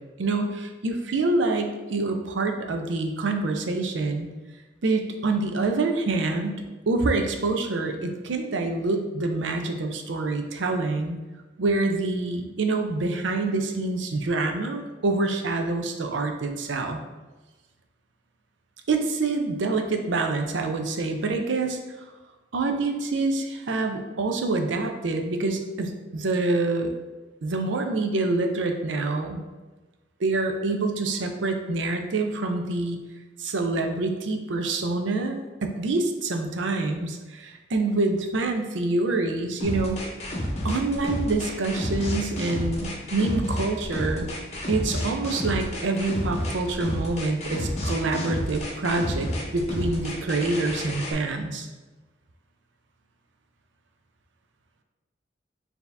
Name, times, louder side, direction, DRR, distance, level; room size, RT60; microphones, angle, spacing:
voice 1, 0.2-4.3 4.8-11.2 11.6-17.0 18.9-21.8 22.5-26.9 27.4-29.4 30.2-33.0 33.4-40.0 40.6-44.3 44.7-51.7, right 3 dB, 80° right, 4 dB, 0.5 m, -26 dB
sound 1, 39.6-51.1, left 1 dB, 35° left, 0.7 m, -30 dB
4.3 x 2.8 x 3.3 m, 1.2 s
head